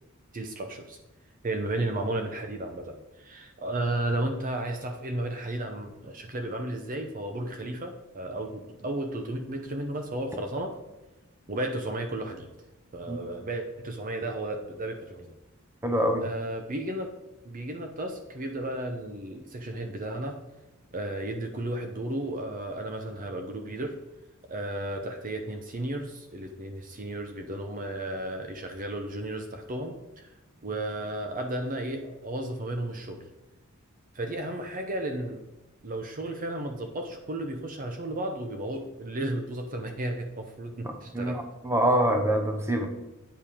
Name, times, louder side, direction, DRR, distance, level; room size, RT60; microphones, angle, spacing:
voice 1, 0.3-1.0 1.4-10.7 11.5-12.5 12.9-15.4 16.2-17.1 17.4-20.4 20.9-23.9 24.5-30.3 30.6-33.2 34.1-35.4 35.8-41.4, right 1 dB, 40° right, 4 dB, 0.8 m, -33 dB
voice 2, 15.8-16.2 41.1-42.9, right 1 dB, 10° right, 4 dB, 1.0 m, -25 dB
8.9 x 5.4 x 4.9 m, 1.0 s
head